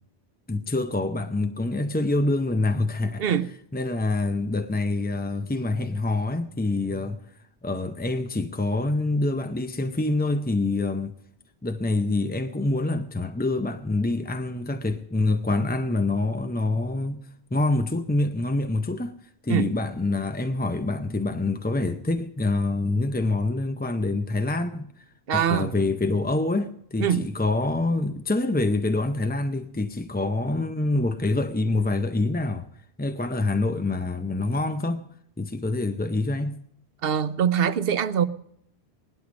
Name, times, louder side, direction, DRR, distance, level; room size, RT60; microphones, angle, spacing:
voice 1, 0.5-3.2 3.7-7.2 7.6-11.1 11.6-17.2 17.5-19.2 19.4-25.0 25.3-32.7 33.0-35.1 35.4-36.6, left 2 dB, 15° left, 0.4 m, -26 dB
voice 2, 3.2-3.5 19.5-19.7 25.3-25.7 27.0-27.2 37.0-38.3, right 8 dB, 65° right, 0.9 m, -23 dB
18.5 x 11.5 x 5.1 m
omnidirectional pair, 1.1 m